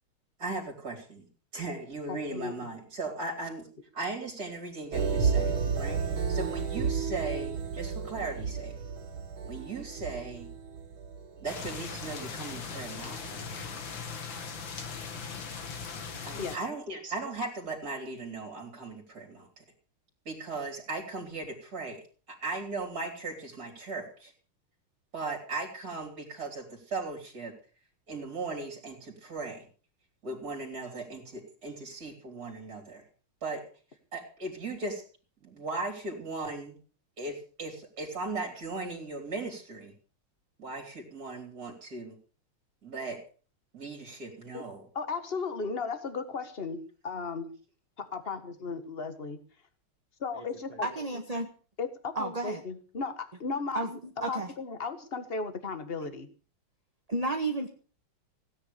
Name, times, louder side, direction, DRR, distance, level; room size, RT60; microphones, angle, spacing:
voice 1, 0.4-1.3 1.5-3.7 3.9-8.7 9.4-10.5 11.4-13.5 16.2-19.6 20.3-22.0 22.3-24.3 25.1-27.6 28.1-29.7 30.2-33.0 33.4-33.6 34.1-35.0 35.4-36.8 37.2-39.9 40.6-42.2 42.8-43.2 43.7-44.9, right 3 dB, 45° right, 1 dB, 4.1 m, -37 dB
voice 2, 2.1-2.7 16.4-16.6 44.5-44.6 45.0-47.5 48.0-49.4 50.2-50.9 51.8-54.0 54.3-56.3, left 4 dB, 30° left, 10 dB, 1.7 m, -35 dB
sound 1, 4.9-12.8 13.2-13.4, right 6 dB, 75° right, 2.8 m, -32 dB
sound 2, 11.5-16.6, left 5 dB, 65° left, 2.6 m, -39 dB
voice 3, 50.7-51.5 52.1-52.6 53.7-54.5 57.1-57.7, right 2 dB, 20° right, 4 dB, 1.4 m, -32 dB
17.0 x 9.9 x 6.9 m, 0.40 s
omnidirectional pair, 2.3 m